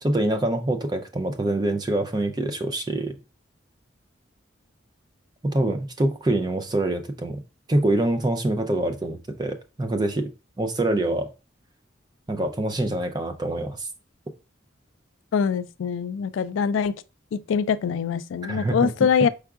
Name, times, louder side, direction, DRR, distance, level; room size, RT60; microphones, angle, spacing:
voice 1, 0.0-3.1 5.4-7.4 7.7-10.3 10.6-11.3 12.3-13.9 18.5-18.9, right 1 dB, 20° right, 0.4 m, -25 dB
voice 2, 15.3-16.9 17.3-19.3, left 6 dB, 85° left, 0.3 m, -23 dB
4.7 x 3.5 x 2.4 m
head